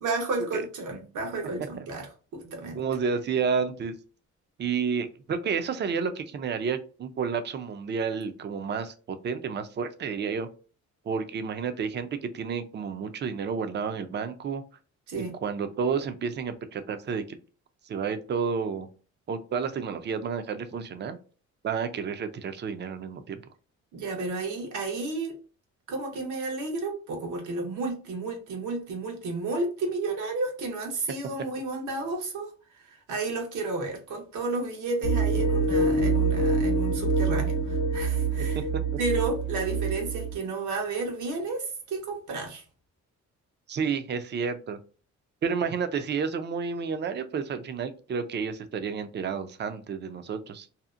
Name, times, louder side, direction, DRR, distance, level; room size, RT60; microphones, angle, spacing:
voice 1, 0.0-2.8 15.1-15.3 23.9-25.4 25.9-38.6 39.0-42.6, right 3 dB, 80° right, 1.0 m, -32 dB
voice 2, 2.4-3.9 4.6-10.5 11.1-14.6 15.4-17.4 17.8-18.9 19.3-21.2 21.6-23.4 38.5-38.8 43.7-44.8 45.4-50.7, right 6 dB, 35° right, 0.4 m, -30 dB
sound 1, 35.0-40.3, right 3 dB, 75° left, 0.7 m, -25 dB
2.7 x 2.0 x 2.4 m
cardioid pair, 90°, 30 cm